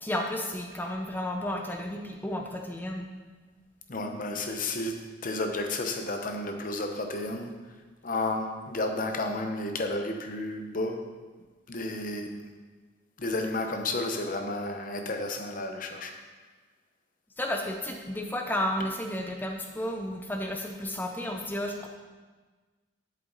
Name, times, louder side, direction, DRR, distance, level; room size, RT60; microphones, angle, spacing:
voice 1, 0.0-3.1 17.4-21.9, left 1 dB, 10° left, 2 dB, 0.5 m, -32 dB
voice 2, 3.9-7.5 8.0-11.0 11.7-12.5 13.2-16.2, left 2 dB, 45° left, 4 dB, 0.8 m, -32 dB
7.8 x 7.6 x 3.9 m, 1.4 s
head